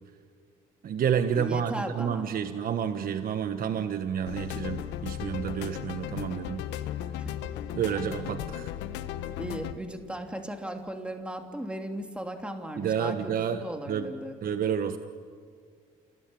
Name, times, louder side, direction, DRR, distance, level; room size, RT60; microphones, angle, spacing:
voice 1, 0.8-6.6 7.7-8.7 12.8-14.1 14.4-15.0, right 8 dB, 55° right, 8 dB, 1.3 m, -29 dB
voice 2, 1.3-2.3 7.2-7.3 9.4-14.4, right 1 dB, 5° right, 3 dB, 3.1 m, -36 dB
sound 1, 4.3-9.7, left 11 dB, 80° left, 1.3 m, -36 dB
28.5 x 20.5 x 10.0 m, 2.1 s
supercardioid pair, 70°, 18 cm